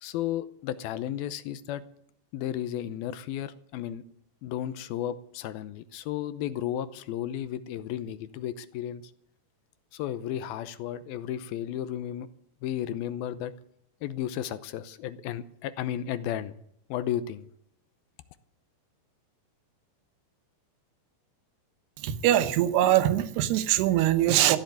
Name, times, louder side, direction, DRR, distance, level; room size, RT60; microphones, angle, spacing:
voice 1, 0.0-1.8 2.3-4.0 4.4-9.1 9.9-12.3 12.6-13.5 14.0-16.6 16.9-17.5, left 11 dB, 75° left, 2.5 m, -33 dB
voice 2, 22.0-24.6, right 13 dB, 80° right, 3.0 m, -22 dB
15.0 x 10.0 x 9.2 m
omnidirectional pair, 4.7 m